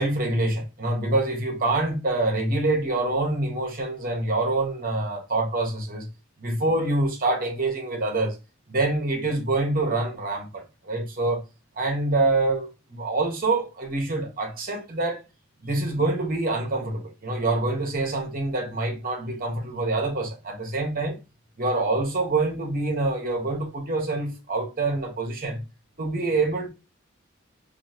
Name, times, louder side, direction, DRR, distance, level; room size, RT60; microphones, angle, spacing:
voice 1, 0.0-6.1 6.4-8.4 8.7-11.4 11.8-15.2 15.6-21.2 21.6-25.6 26.0-26.7, right 2 dB, 45° right, 1.2 m, -26 dB
3.1 x 2.8 x 4.2 m
head